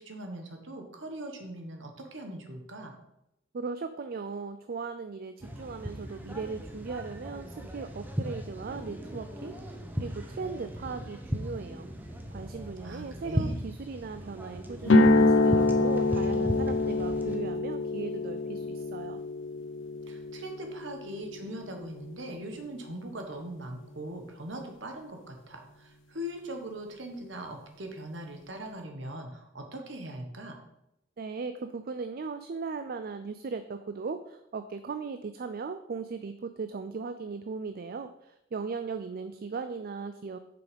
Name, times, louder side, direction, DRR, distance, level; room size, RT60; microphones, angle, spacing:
voice 1, 0.0-2.9 12.8-13.6 20.1-30.6, right 1 dB, 70° right, 4 dB, 1.5 m, -41 dB
voice 2, 3.5-11.9 12.3-19.2 31.2-40.4, right 4 dB, 50° right, 10 dB, 0.4 m, -38 dB
sound 1, 5.4-17.4, equal, 10° right, 0.9 m, -37 dB
sound 2, 14.8-22.9, left 2 dB, 90° left, 0.8 m, -26 dB
7.1 x 5.9 x 5.3 m, 0.84 s
head